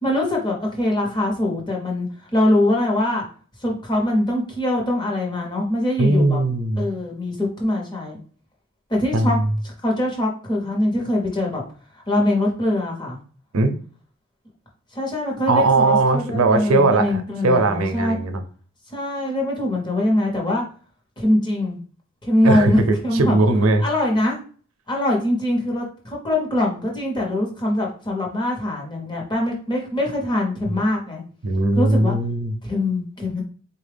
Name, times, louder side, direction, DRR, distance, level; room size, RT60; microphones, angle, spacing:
voice 1, 0.0-3.2 3.6-6.4 6.8-8.2 8.9-9.4 9.6-11.6 12.1-13.2 14.9-18.2 18.9-20.6 21.2-21.8 22.2-23.4 23.8-24.4 24.9-31.2 31.8-32.1 32.6-33.4, left 1 dB, 20° left, 0 dB, 0.9 m, -23 dB
voice 2, 6.0-6.9 9.1-9.4 13.5-13.7 15.5-18.4 22.4-23.8 31.4-32.5, right 2 dB, 85° right, 7 dB, 0.6 m, -19 dB
4.1 x 2.3 x 3.3 m, 0.42 s
head